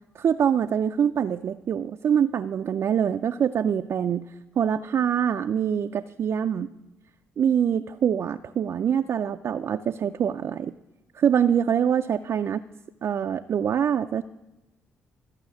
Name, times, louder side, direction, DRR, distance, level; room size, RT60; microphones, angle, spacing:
voice 1, 0.2-4.2 4.6-6.7 7.4-10.7 11.2-12.6 13.0-14.2, right 8 dB, 55° right, 7 dB, 0.4 m, -24 dB
12.5 x 5.6 x 9.1 m, 1.0 s
hypercardioid pair, 50°, 5 cm